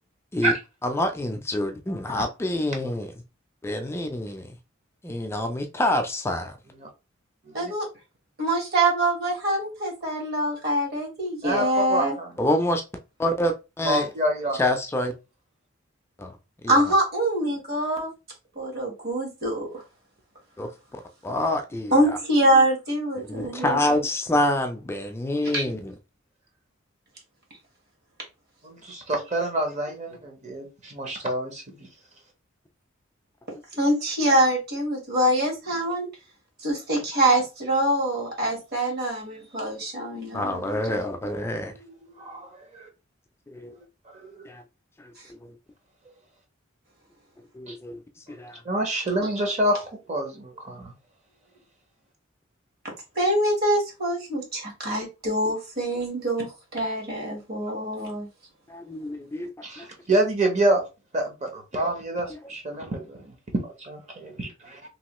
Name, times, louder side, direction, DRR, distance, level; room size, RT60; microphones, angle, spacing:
voice 1, 0.8-3.1 3.6-4.5 5.0-6.6 12.4-12.8 13.2-14.1 14.6-15.1 16.2-16.3 16.6-16.7 20.6-22.2 23.2-25.9 40.3-41.7 43.5-43.7 44.5-44.6 45.0-45.1 45.4-45.5 47.5-48.0 48.3-48.6 58.7-59.9 62.3-62.4, left 1 dB, 10° left, 0.4 m, -27 dB
voice 2, 7.5-7.9 8.4-12.2 16.7-18.1 18.6-19.7 21.9-23.8 25.5-25.6 33.8-36.1 36.6-40.6 40.9-41.0 53.1-58.3, right 1 dB, 50° right, 1.3 m, -24 dB
voice 3, 11.4-12.3 13.8-14.6 28.6-31.6 41.9-42.9 44.1-44.5 47.7-47.8 48.6-50.9 59.6-60.9 61.1-63.3 63.6-64.8, right 1 dB, 35° right, 0.8 m, -27 dB
3.0 x 2.7 x 3.0 m
head